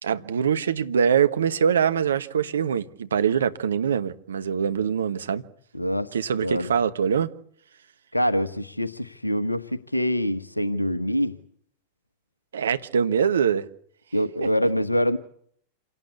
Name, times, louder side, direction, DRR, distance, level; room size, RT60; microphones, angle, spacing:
voice 1, 0.0-5.4 6.1-7.3 12.5-13.7 14.4-14.5, right 7 dB, 65° right, 1.3 m, -23 dB
voice 2, 5.7-6.1 6.4-6.7 8.1-11.4 14.1-15.2, equal, 85° left, 1.1 m, -25 dB
27.5 x 18.0 x 8.5 m
figure-of-eight pair, 90°, 0 cm